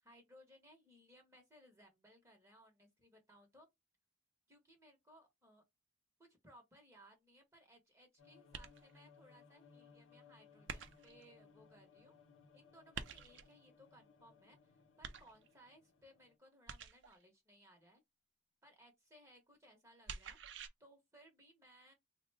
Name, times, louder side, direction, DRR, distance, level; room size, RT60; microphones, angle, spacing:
voice 1, 0.0-3.7 4.5-5.6 6.2-12.1 12.5-18.0 18.6-20.4 20.8-21.9, equal, 15° right, 0.9 m, -64 dB
sound 1, 8.2-16.4, left 5 dB, 75° left, 0.6 m, -65 dB
sound 2, 8.5-9.1 10.7-11.3 12.9-13.6 15.0-15.7 16.7-17.2 20.1-20.7, right 6 dB, 65° right, 0.5 m, -48 dB
3.6 x 2.1 x 3.3 m
head